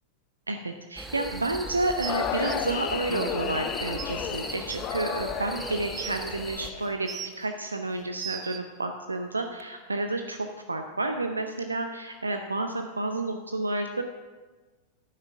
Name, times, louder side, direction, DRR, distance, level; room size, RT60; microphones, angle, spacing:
voice 1, 0.5-7.1 7.4-10.4 10.7-14.0, right 2 dB, 80° right, 6 dB, 0.6 m, -30 dB
sound 1, 1.0-6.7, right 2 dB, 10° right, 1.0 m, -39 dB
sound 2, 2.0-7.2, left 8 dB, 35° left, 0.8 m, -33 dB
sound 3, 2.0-2.5 3.6-3.7 4.0-4.1 4.7-4.8 5.6-6.2 6.8-7.5 7.9-8.6 9.6-9.7, right 9 dB, 30° right, 0.7 m, -37 dB
11.5 x 9.6 x 6.0 m, 1.3 s
figure-of-eight pair, 90°, 0 cm